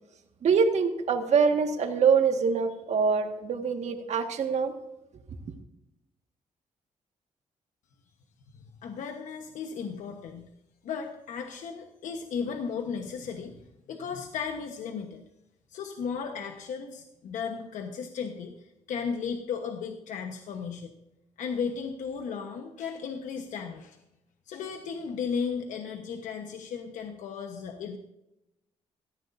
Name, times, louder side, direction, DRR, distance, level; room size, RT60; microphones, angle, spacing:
voice 1, 0.4-4.7, right 5 dB, 65° right, 5 dB, 1.7 m, -24 dB
voice 2, 8.8-10.5 10.8-13.6 13.9-15.2 15.7-20.9 21.4-24.0 24.5-28.0, left 6 dB, 80° left, 4 dB, 1.2 m, -35 dB
17.5 x 14.0 x 2.7 m, 0.89 s
cardioid pair, 95°, 13 cm